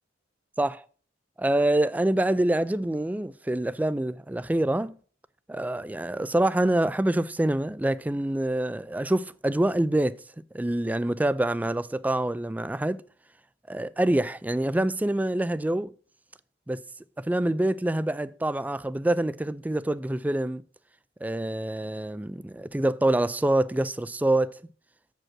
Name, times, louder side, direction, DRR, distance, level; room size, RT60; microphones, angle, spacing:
voice 1, 1.4-4.9 5.5-10.2 10.5-13.0 13.7-15.9 16.7-16.8 17.2-20.6 21.2-24.6, right 1 dB, 10° right, 0.3 m, -26 dB
7.5 x 5.2 x 6.0 m
head